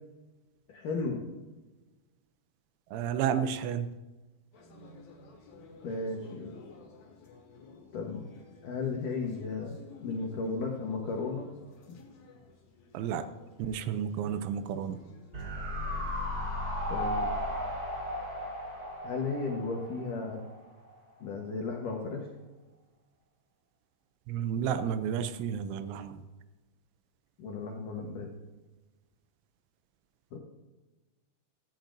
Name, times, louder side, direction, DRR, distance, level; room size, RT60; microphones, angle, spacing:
voice 1, 0.7-1.2 5.8-6.6 7.9-8.2 8.6-11.5 11.9-12.0 16.9-17.3 19.0-20.4 21.2-22.3 27.4-28.3 30.3-30.4, left 4 dB, 80° left, 1 dB, 1.8 m, -35 dB
voice 2, 2.9-3.9 12.9-13.3 13.6-15.0 24.3-26.2, right 8 dB, 80° right, 11 dB, 2.9 m, -31 dB
sound 1, 4.5-16.3, left 4 dB, 55° left, 2.8 m, -53 dB
sound 2, 15.3-20.6 20.9-21.0, equal, 30° right, 1.9 m, -35 dB
16.5 x 13.5 x 2.6 m, 1.2 s
omnidirectional pair, 5.6 m